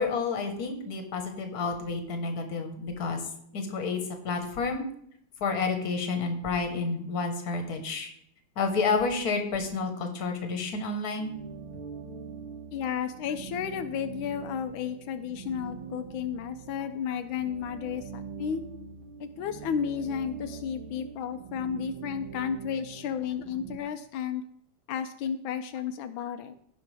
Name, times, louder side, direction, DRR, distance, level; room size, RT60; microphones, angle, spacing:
voice 1, 0.0-3.2 3.5-4.8 5.4-8.1 8.6-11.3, left 4 dB, 55° left, 5 dB, 1.7 m, -30 dB
sound 1, 11.2-23.8, right 6 dB, 85° right, 1.7 m, -43 dB
voice 2, 12.7-18.6 19.2-24.4 24.9-26.5, left 8 dB, 85° left, 8 dB, 1.4 m, -33 dB
16.5 x 5.7 x 3.4 m, 0.69 s
omnidirectional pair, 2.1 m